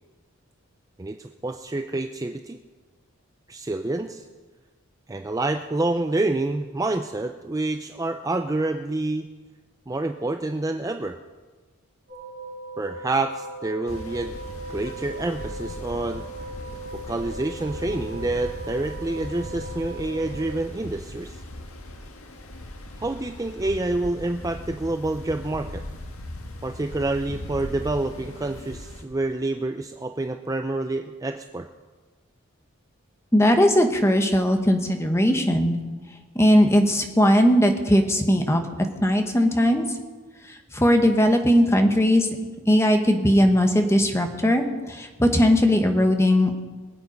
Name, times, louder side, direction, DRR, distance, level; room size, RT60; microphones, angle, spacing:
voice 1, 1.0-2.6 3.5-4.3 5.1-9.3 9.9-11.2 12.8-14.3 14.7-16.2 16.9-21.4 23.0-25.8 26.6-31.7, right 2 dB, 15° right, 6 dB, 0.4 m, -28 dB
sound 1, 12.1-20.5, right 2 dB, 40° right, 4.9 m, -39 dB
sound 2, 13.9-29.0, left 1 dB, 85° left, 1.6 m, -38 dB
voice 2, 33.3-35.7 36.3-38.6 39.0-39.8 40.5-42.3 42.7-46.5, equal, 10° left, 5 dB, 1.2 m, -19 dB
23.0 x 8.3 x 5.2 m, 1.3 s
head